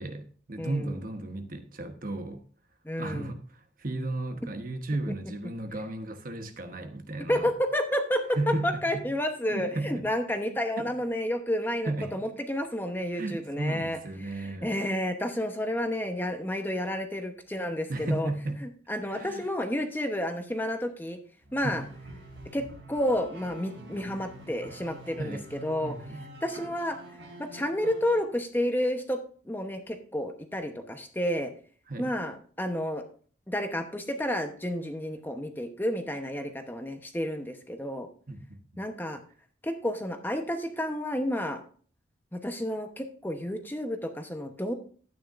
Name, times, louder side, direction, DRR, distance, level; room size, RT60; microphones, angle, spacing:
voice 1, 0.0-2.4 3.0-7.5 8.3-9.0 9.5-10.0 10.8-10.9 11.9-12.2 13.1-14.7 17.9-18.6 19.1-19.5 21.6-21.9 25.2-25.4 25.8-26.2 31.9-32.1 38.3-38.6, right 2 dB, 45° right, 1.1 m, -34 dB
voice 2, 0.6-1.0 2.8-3.3 7.3-18.3 18.6-21.2 21.5-21.8 22.5-25.9 26.4-27.0 27.4-29.2 29.5-31.5 32.0-33.0 33.5-38.1 38.8-39.2 39.6-41.6 42.3-44.7, left 1 dB, 10° left, 0.9 m, -30 dB
sound 1, 21.4-28.2, right 1 dB, 80° right, 3.8 m, -46 dB
12.0 x 9.4 x 2.5 m
head